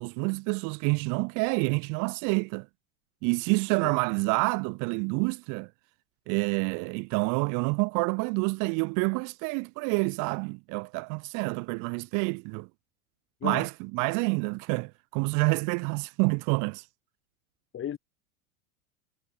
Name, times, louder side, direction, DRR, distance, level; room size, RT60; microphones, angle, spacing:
voice 1, 0.0-2.7 3.2-5.7 6.3-12.7 13.4-16.8, right 33 dB, 45° right, 0.9 m, -28 dB
voice 2, 3.8-3.9 13.4-13.6 17.7-18.0, left 10 dB, 30° left, 5.5 m, -34 dB
hypercardioid pair, 100°, 41 cm